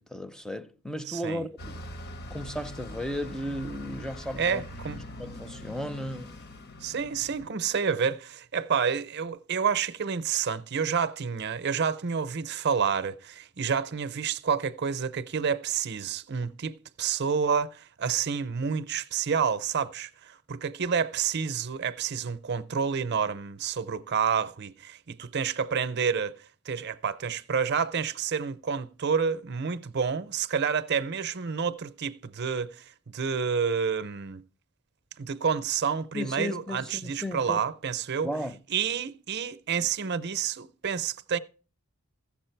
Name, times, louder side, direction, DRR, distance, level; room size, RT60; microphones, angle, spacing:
voice 1, 0.0-1.8 2.3-4.6 5.2-6.4 36.1-37.6 38.2-38.6, equal, 5° left, 0.5 m, -35 dB
voice 2, 1.1-1.4 4.4-5.0 6.8-26.4 26.7-34.4 35.2-38.3 38.7-41.4, right 6 dB, 50° right, 0.6 m, -29 dB
Bus, 1.6-7.5, left 1 dB, 45° left, 0.8 m, -42 dB
15.0 x 7.3 x 4.5 m
head